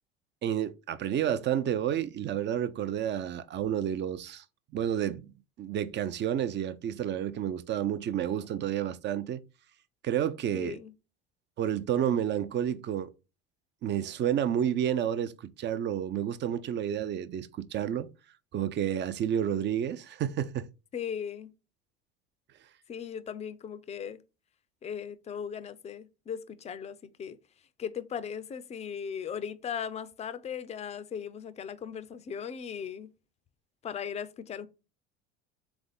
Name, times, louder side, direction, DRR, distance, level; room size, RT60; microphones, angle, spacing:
voice 1, 0.4-4.4 4.7-5.3 5.6-9.4 10.0-10.8 11.6-13.1 13.8-15.3 15.6-18.1 18.5-20.7, right 10 dB, 35° right, 0.5 m, -30 dB
voice 2, 10.5-10.9 20.9-21.5 22.9-24.2 24.8-27.4 27.8-33.1 33.8-34.7, left 7 dB, 20° left, 0.5 m, -38 dB
3.6 x 3.5 x 3.9 m
hypercardioid pair, 85°, 30 cm